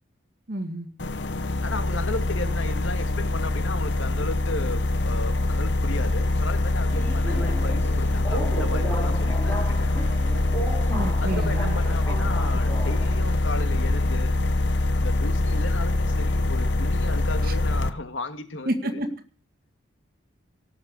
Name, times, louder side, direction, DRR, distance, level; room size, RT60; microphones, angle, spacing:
voice 1, 0.5-0.9 10.9-11.8 17.4-17.5 18.7-19.1, right 1 dB, 50° right, 8 dB, 2.0 m, -29 dB
sound 1, 1.0-17.9, left 2 dB, 70° left, 1.0 m, -24 dB
voice 2, 1.6-9.9 11.2-14.3 14.9-19.0, left 2 dB, 90° left, 8 dB, 2.0 m, -35 dB
Subway metro underground, 6.6-13.4, right 1 dB, 15° left, 4.2 m, -35 dB
18.0 x 7.0 x 8.2 m, 0.42 s
head